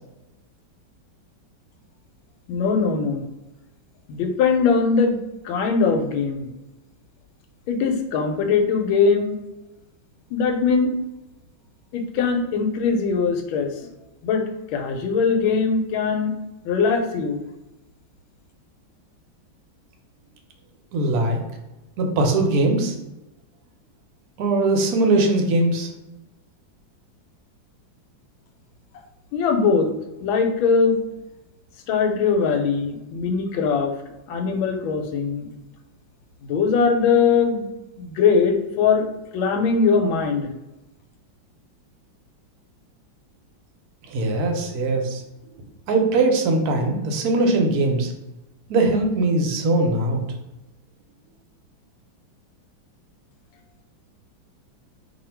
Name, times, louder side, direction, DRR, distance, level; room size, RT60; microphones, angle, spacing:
voice 1, 2.5-3.3 4.1-5.2 5.4-6.5 7.7-9.3 10.3-10.9 11.9-13.7 14.2-14.4 14.7-16.3 16.6-17.4 29.3-29.9 30.2-31.0 31.9-33.9 34.3-35.5 36.4-37.7 38.0-39.1 39.3-40.5, left 5 dB, 85° left, 5 dB, 1.4 m, -21 dB
voice 2, 20.9-21.4 22.0-22.9 24.4-25.9 44.1-45.2 45.9-48.1 48.7-50.2, right 2 dB, 65° right, 3 dB, 1.0 m, -20 dB
2.8 x 2.7 x 4.3 m, 1.0 s
omnidirectional pair, 2.2 m